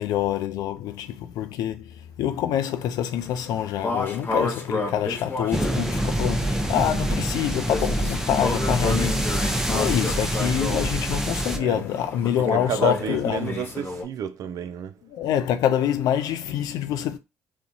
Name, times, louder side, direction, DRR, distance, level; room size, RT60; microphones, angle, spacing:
voice 1, 0.0-13.6 15.1-17.2, left 10 dB, 65° left, 0.4 m, -26 dB
sound 1, 3.2-14.0, left 2 dB, 30° left, 0.8 m, -32 dB
sound 2, 5.5-11.6, right 1 dB, 5° right, 0.6 m, -26 dB
voice 2, 11.5-11.8 12.5-15.0, right 8 dB, 60° right, 0.4 m, -31 dB
2.4 x 2.1 x 2.7 m
hypercardioid pair, 55°, 7 cm